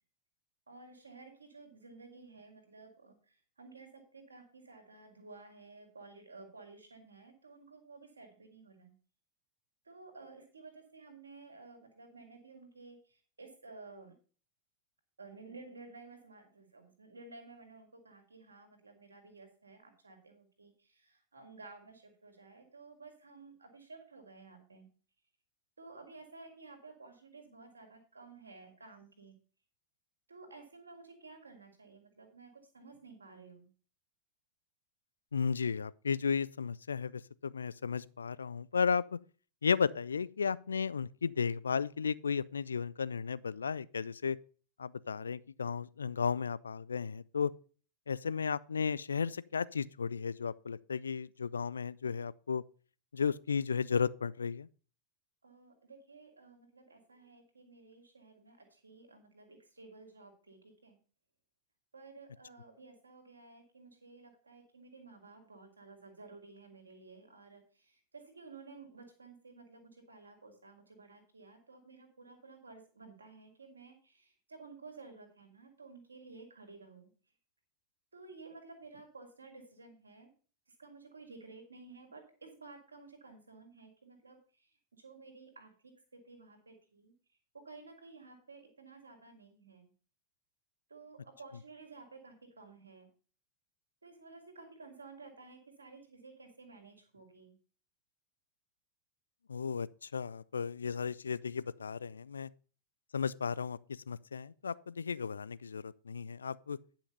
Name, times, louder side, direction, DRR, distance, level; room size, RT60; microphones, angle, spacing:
voice 1, 0.7-9.0 9.8-14.1 15.2-24.9 25.8-29.4 30.3-33.7 55.4-61.0 61.9-77.1 78.1-80.3 80.7-87.1 87.5-89.9 90.9-93.1 94.0-97.6, right 3 dB, 75° right, 2.7 m, -54 dB
voice 2, 35.3-39.2 39.6-44.4 44.8-47.5 48.1-52.6 53.1-54.7 99.5-102.5 103.1-106.8, left 6 dB, 70° left, 0.4 m, -34 dB
10.0 x 5.8 x 5.4 m
figure-of-eight pair, 90°, 0 cm